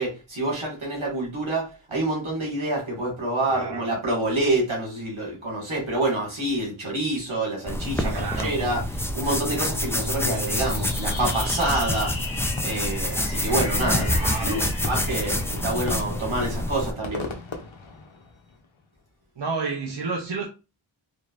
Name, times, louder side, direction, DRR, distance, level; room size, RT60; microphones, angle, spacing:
voice 1, 0.0-12.4 12.6-17.3, right 2 dB, 80° right, 1.9 m, -27 dB
voice 2, 3.5-3.9 7.9-8.6 14.0-14.7 19.4-20.5, right 4 dB, 60° right, 0.8 m, -31 dB
sound 1, 7.7-16.9, left 1 dB, 5° left, 0.4 m, -27 dB
Fireworks, 10.5-18.6, left 3 dB, 75° left, 0.8 m, -37 dB
3.8 x 3.2 x 2.5 m
wide cardioid pair, 50°, 47 cm